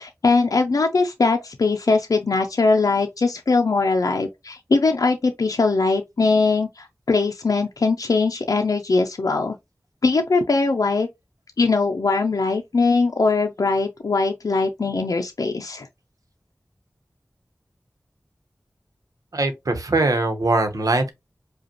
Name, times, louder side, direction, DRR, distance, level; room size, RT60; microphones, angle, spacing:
voice 1, 0.0-9.6 10.0-11.1 11.6-15.9, left 3 dB, 80° left, 0.5 m, -21 dB
voice 2, 19.3-21.1, right 2 dB, 80° right, 1.0 m, -21 dB
5.0 x 2.4 x 2.9 m
wide cardioid pair, 50°, 6 cm